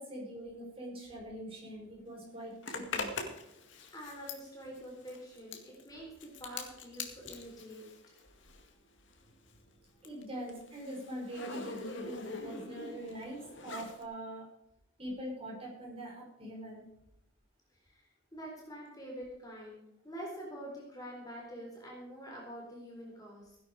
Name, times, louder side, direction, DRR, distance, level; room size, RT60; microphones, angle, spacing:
voice 1, 0.0-3.1 10.0-14.5 15.0-16.8, right 1 dB, 30° right, -3 dB, 5.8 m, -43 dB
Zipper (clothing), 2.6-8.8 9.1-14.0, left 4 dB, 65° left, 2.0 m, -44 dB
voice 2, 3.9-7.9 9.2-9.3 17.9-23.6, equal, 20° left, -1 dB, 3.9 m, -46 dB
16.5 x 11.0 x 4.8 m, 0.81 s
head